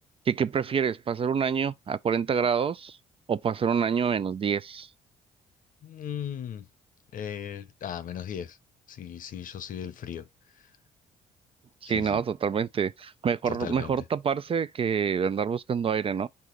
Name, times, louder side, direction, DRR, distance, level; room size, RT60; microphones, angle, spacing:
voice 1, 0.3-3.0 3.3-4.9 11.8-16.3, right 7 dB, 35° right, 0.4 m, -27 dB
voice 2, 5.8-6.7 7.1-8.6 8.9-10.3 10.5-10.7 11.8-12.2 13.4-14.0, left 9 dB, 55° left, 0.7 m, -37 dB
4.9 x 2.8 x 3.8 m
hypercardioid pair, 55°, 16 cm